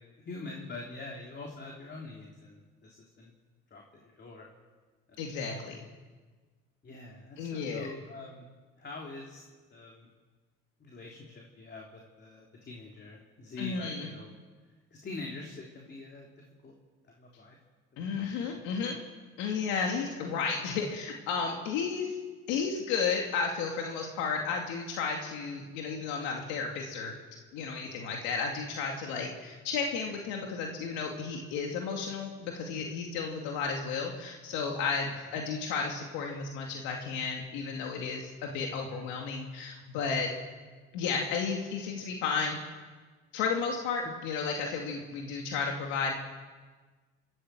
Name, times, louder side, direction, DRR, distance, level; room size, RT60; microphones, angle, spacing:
voice 1, 0.2-3.3 3.7-4.5 5.1-5.2 6.8-8.5 8.8-9.4 9.7-10.1 10.8-14.3 14.9-16.7 17.0-17.6 17.9-18.2 18.7-19.0, left 3 dB, 35° left, -1 dB, 3.3 m, -44 dB
voice 2, 5.2-5.8 7.4-7.9 13.6-14.1 18.0-19.0 19.4-22.2 22.5-27.1 27.5-40.3 40.9-42.6 43.3-46.1, left 5 dB, 85° left, 1 dB, 2.4 m, -33 dB
27.0 x 14.0 x 7.6 m, 1.4 s
cardioid pair, 100°, 29 cm